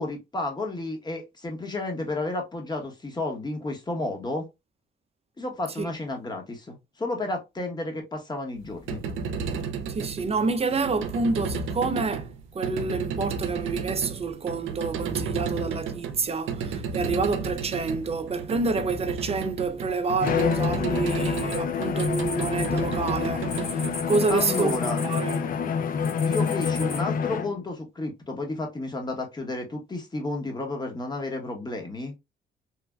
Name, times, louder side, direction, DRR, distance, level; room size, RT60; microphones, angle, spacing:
voice 1, 0.0-4.5 5.4-9.0 24.3-25.0 26.2-32.1, left 2 dB, 20° left, 1.0 m, -32 dB
sound 1, 8.6-24.8, right 5 dB, 85° right, 0.5 m, -33 dB
voice 2, 9.9-25.5, right 4 dB, 30° right, 0.4 m, -28 dB
Bowed string instrument, 20.2-27.6, left 6 dB, 45° left, 0.4 m, -27 dB
sound 2, 21.1-22.7 22.9-25.5 26.0-27.0, left 3 dB, 80° left, 1.8 m, -37 dB
3.2 x 2.1 x 2.3 m
cardioid pair, 90°, 20 cm